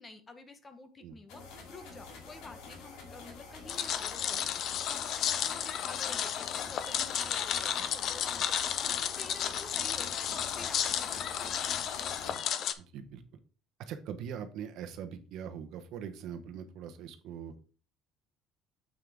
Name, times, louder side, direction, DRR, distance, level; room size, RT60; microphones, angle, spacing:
voice 1, 0.0-11.9, left 2 dB, 20° left, 9 dB, 1.0 m, -50 dB
sound 1, 1.3-12.4, left 4 dB, 75° left, 2.2 m, -47 dB
sound 2, 3.7-12.7, left 9 dB, 50° left, 0.6 m, -33 dB
voice 2, 12.8-13.2 13.8-17.5, right 8 dB, 60° right, 7 dB, 1.0 m, -42 dB
7.5 x 6.1 x 3.5 m, 0.38 s
cardioid pair, 140°, 0 cm